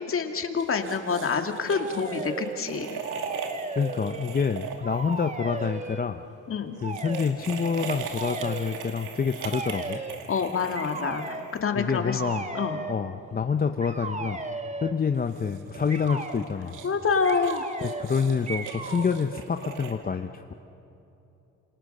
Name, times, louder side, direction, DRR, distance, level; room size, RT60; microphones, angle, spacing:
voice 1, 0.0-3.0 6.5-6.8 10.3-12.2 12.5-12.8 16.8-17.6, left 5 dB, 45° left, 5 dB, 2.2 m, -27 dB
sound 1, 0.6-5.7 6.8-12.0 15.1-19.9, right 6 dB, 85° right, 2.5 m, -39 dB
sound 2, 1.7-2.6 3.0-4.5 4.8-6.1 6.8-7.3 8.1-8.8 9.5-10.2 10.7-11.5 12.0-13.0 13.8-15.0 15.9-16.4 17.2-18.1 18.5-19.1, right 3 dB, 25° right, 1.8 m, -36 dB
voice 2, 3.8-6.2 6.8-10.0 11.7-12.5 12.9-14.4 14.8-16.8 17.8-20.5, left 6 dB, 30° left, 7 dB, 0.9 m, -27 dB
29.0 x 27.0 x 6.7 m, 2.9 s
cardioid pair, 90°, 30 cm